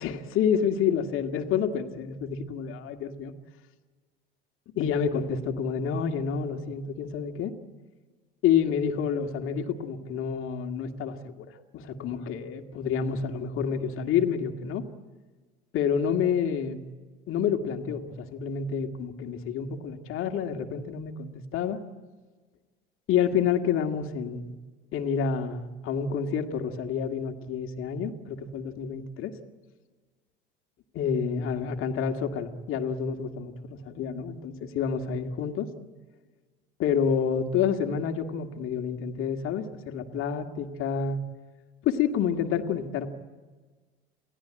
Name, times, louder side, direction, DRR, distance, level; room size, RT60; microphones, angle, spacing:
voice 1, 0.0-3.3 4.8-7.5 8.4-11.5 11.7-14.9 15.7-16.8 17.3-21.8 23.1-24.5 24.9-29.4 31.0-35.7 36.8-41.2 41.8-43.1, left 7 dB, 45° left, 5 dB, 2.1 m, -28 dB
28.5 x 17.5 x 8.8 m, 1.4 s
figure-of-eight pair, 70°, 29 cm